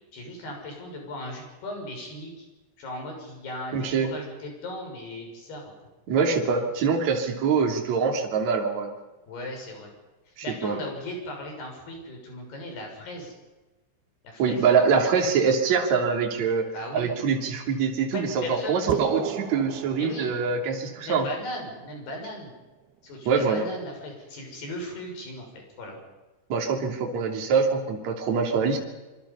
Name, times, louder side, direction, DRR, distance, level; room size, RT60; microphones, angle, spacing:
voice 1, 0.1-2.5 2.8-5.7 9.3-9.9 10.3-13.3 14.2-14.6 16.7-17.1 18.1-18.7 20.0-20.3 21.1-22.5 23.0-26.0, left 1 dB, 65° left, 2 dB, 8.5 m, -37 dB
voice 2, 3.7-4.1 6.1-8.9 10.4-10.8 14.4-16.7 16.9-21.3 23.3-23.7 26.5-28.8, right 5 dB, 45° right, 1 dB, 3.7 m, -24 dB
sound 1, 18.9-20.8, right 11 dB, 75° right, 2.9 m, -31 dB
26.5 x 25.0 x 5.6 m, 1.1 s
omnidirectional pair, 5.1 m